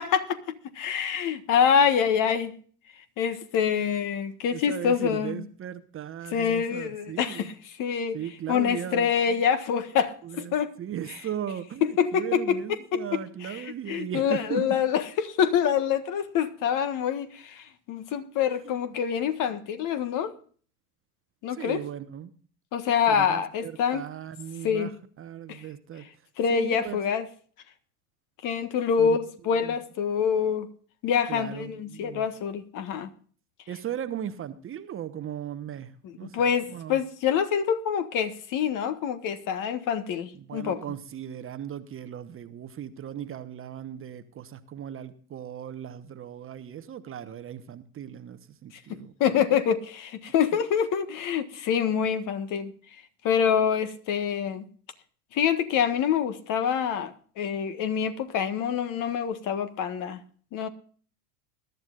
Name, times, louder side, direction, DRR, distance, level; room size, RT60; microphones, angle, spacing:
voice 1, 0.0-2.5 3.2-5.4 6.3-8.2 8.5-10.7 11.1-11.2 11.8-12.6 12.9-20.4 21.4-21.8 22.7-24.0 24.6-24.9 25.5-25.6 26.4-27.3 28.4-30.7 31.0-33.1 36.0-40.8 48.9-52.7 53.2-54.7 55.3-60.2 60.5-60.7, left 7 dB, 40° left, 1.5 m, -26 dB
voice 2, 4.5-7.5 8.1-9.4 10.2-14.8 18.6-19.0 21.5-22.3 23.1-24.9 25.2-26.1 26.5-27.0 29.0-29.2 29.6-29.8 31.3-32.2 33.7-37.0 40.3-49.4, right 10 dB, 25° right, 1.1 m, -37 dB
21.5 x 12.0 x 2.5 m
hypercardioid pair, 95°, 47 cm